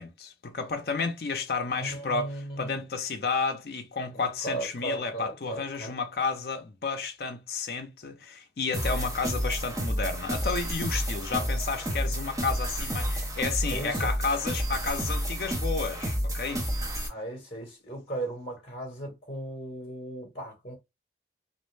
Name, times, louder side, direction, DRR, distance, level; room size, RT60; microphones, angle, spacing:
voice 1, 0.0-2.3 2.6-16.6, left 4 dB, 60° left, 0.5 m, -31 dB
voice 2, 1.7-2.8 4.1-6.0 11.3-11.5 13.7-14.1 17.1-20.8, right 1 dB, 35° left, 1.0 m, -37 dB
sound 1, 8.7-17.1, equal, 20° right, 0.6 m, -30 dB
2.4 x 2.1 x 3.1 m
head